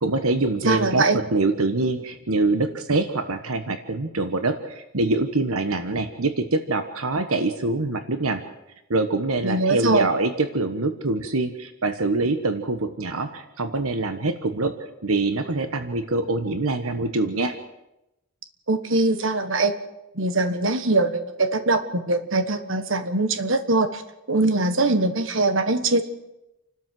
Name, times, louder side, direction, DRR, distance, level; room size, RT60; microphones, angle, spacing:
voice 1, 0.0-8.4 8.9-14.7 15.0-17.5, right 2 dB, 75° right, 9 dB, 1.3 m, -24 dB
voice 2, 0.6-1.2 9.4-10.1 18.7-19.7 20.1-24.0 24.3-26.0, right 2 dB, 60° right, 9 dB, 1.5 m, -22 dB
28.5 x 12.5 x 7.7 m, 0.92 s
head